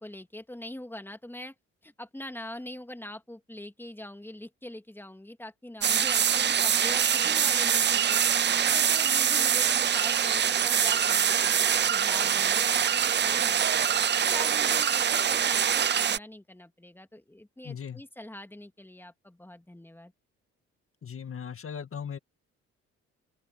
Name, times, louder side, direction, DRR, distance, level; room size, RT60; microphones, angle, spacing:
voice 1, 0.0-1.5 1.8-8.2 8.6-13.9 14.2-20.1, left 1 dB, 5° left, 2.7 m, -43 dB
sound 1, 5.8-16.2, right 8 dB, 35° right, 0.6 m, -24 dB
voice 2, 17.6-18.0 21.0-22.2, left 7 dB, 45° left, 1.9 m, -38 dB
open air
supercardioid pair, 65°, 30 cm